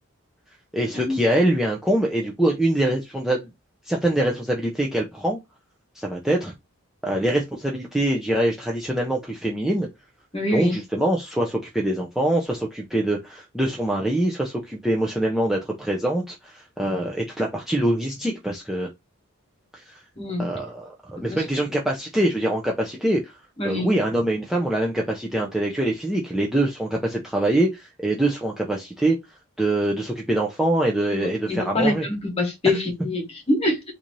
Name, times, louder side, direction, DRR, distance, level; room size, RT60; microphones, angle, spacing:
voice 1, 0.7-3.5 3.8-5.4 5.9-6.5 7.0-9.9 10.5-18.9 19.7-20.0 20.4-23.4 23.6-29.2 29.6-32.1, right 1 dB, ahead, 0.4 m, -24 dB
voice 2, 10.3-10.8 20.2-20.5 21.3-21.4 23.6-23.9 31.1-33.8, left 2 dB, 25° left, 1.1 m, -25 dB
3.9 x 2.6 x 3.0 m
head